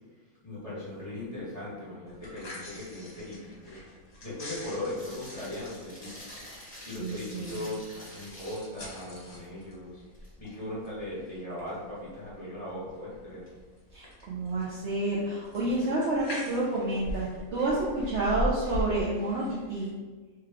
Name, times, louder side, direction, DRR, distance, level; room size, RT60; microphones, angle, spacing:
voice 1, 0.4-3.8 4.2-6.1 6.8-10.0 10.4-13.4, left 1 dB, 25° left, -10 dB, 1.3 m, -38 dB
sound 1, 2.1-19.9, equal, 50° left, 1.2 m, -41 dB
sound 2, 5.0-8.8 9.4-9.6 10.0-10.5 13.5-13.6 16.5-16.8, equal, 5° left, 0.9 m, -48 dB
voice 2, 7.0-7.6 13.9-19.9, right 2 dB, 65° right, -6 dB, 0.8 m, -29 dB
3.3 x 2.3 x 3.5 m, 1.3 s
omnidirectional pair, 1.5 m